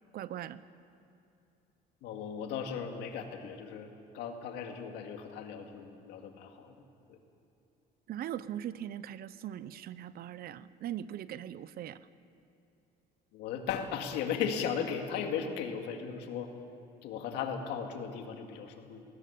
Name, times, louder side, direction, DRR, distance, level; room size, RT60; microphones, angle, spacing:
voice 1, 0.1-0.6 8.1-12.0, right 11 dB, 65° right, 16 dB, 0.8 m, -40 dB
voice 2, 2.0-6.8 7.1-7.2 13.3-16.5 17.0-19.0, left 7 dB, 90° left, 4 dB, 2.2 m, -37 dB
20.0 x 18.0 x 8.6 m, 2.6 s
cardioid pair, 110°, 17 cm